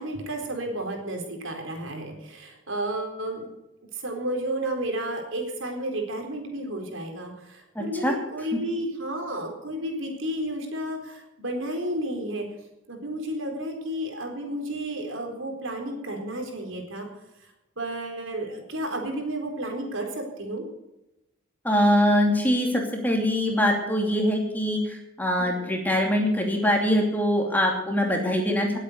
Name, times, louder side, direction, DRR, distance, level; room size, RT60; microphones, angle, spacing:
voice 1, 0.0-3.5 3.9-12.5 12.9-17.1 17.8-20.6 25.6-25.7, right 1 dB, 70° right, 3 dB, 4.2 m, -32 dB
voice 2, 7.7-8.1 21.6-28.8, equal, 10° left, 1 dB, 2.6 m, -23 dB
20.0 x 8.4 x 6.7 m, 0.92 s
head